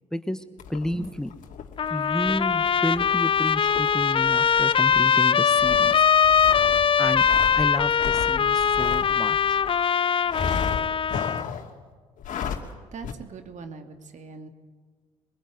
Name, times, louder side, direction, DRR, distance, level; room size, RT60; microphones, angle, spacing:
voice 1, 0.1-0.4 0.7-1.3 1.9-5.9 7.0-7.3 7.5-9.6, left 1 dB, 5° left, 9 dB, 1.3 m, -31 dB
sound 1, 0.6-9.8 10.3-11.7 12.2-12.7 13.0-13.1, left 7 dB, 55° left, 2.5 m, -35 dB
Trumpet, 1.8-11.5, left 7 dB, 35° left, 0.7 m, -21 dB
voice 2, 12.9-14.5, right 5 dB, 50° right, 6 dB, 2.7 m, -41 dB
23.5 x 21.5 x 9.4 m, 1.5 s
hypercardioid pair, 55°, 16 cm